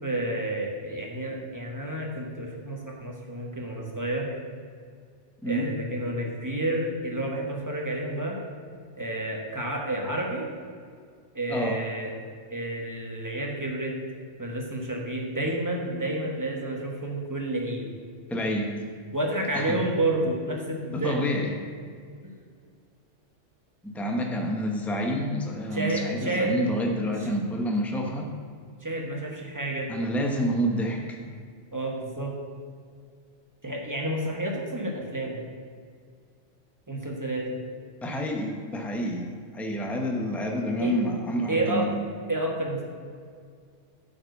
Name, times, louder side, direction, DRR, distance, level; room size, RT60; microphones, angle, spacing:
voice 1, 0.0-4.3 5.5-8.4 9.0-10.5 11.3-12.1 12.5-13.9 14.4-17.9 19.1-21.5 22.2-22.3 25.7-26.5 27.2-27.3 28.8-29.9 31.7-32.3 33.6-35.4 36.9-37.6 40.8-40.9 41.5-41.9 42.3-42.8, right 1 dB, 15° right, -1 dB, 1.2 m, -30 dB
voice 2, 18.3-18.7 19.5-19.8 20.9-21.5 23.8-28.3 29.9-31.2 38.0-41.9, equal, ahead, 1 dB, 0.8 m, -28 dB
8.4 x 5.1 x 6.7 m, 2.1 s
omnidirectional pair, 1.2 m